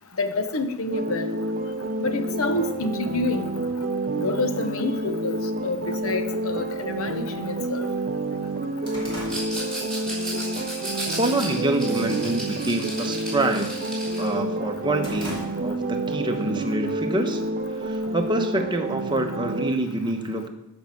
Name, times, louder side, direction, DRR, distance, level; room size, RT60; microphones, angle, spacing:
voice 1, 0.2-1.3 2.0-3.5 4.2-5.3 5.6-7.9, left 2 dB, 65° left, 9 dB, 0.9 m, -27 dB
sound 1, 0.9-19.7, right 2 dB, 40° right, 0.6 m, -29 dB
sound 2, 8.2-10.4 10.8-11.1 11.5-12.0 12.3-12.6 12.9-14.1 14.5-16.0 16.4-16.5 17.4-18.3, equal, 20° left, 2.5 m, -40 dB
Rattle, 9.2-14.3, right 1 dB, 5° left, 3.5 m, -34 dB
voice 2, 11.2-13.7 14.2-17.4 17.8-20.5, right 2 dB, 20° right, 4 dB, 1.0 m, -26 dB
12.5 x 5.3 x 5.9 m, 0.91 s
head